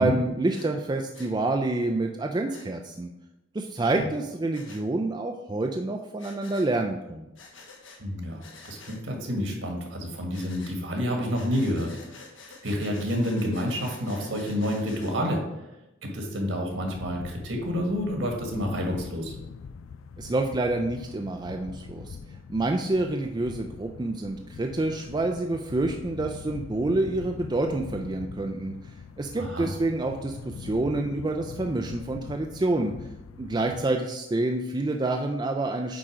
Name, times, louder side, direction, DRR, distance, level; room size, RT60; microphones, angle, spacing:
voice 1, 0.0-3.1 3.5-7.3 20.2-22.2 22.5-28.7 29.2-32.9 33.4-36.0, right 2 dB, 20° right, 3 dB, 0.3 m, -28 dB
Breathing, 0.5-0.7 1.1-1.3 2.5-2.7 4.5-4.8 6.2-6.7 7.4-8.0 8.4-9.0 10.3-10.8 11.3-15.1, left 4 dB, 70° left, 1.2 m, -48 dB
voice 2, 8.0-11.9 12.6-15.4 16.0-19.3 29.4-29.7, equal, 65° right, 1 dB, 1.7 m, -29 dB
sound 1, 16.6-33.8, left 5 dB, 85° left, 0.4 m, -43 dB
8.6 x 3.8 x 5.0 m, 0.95 s
head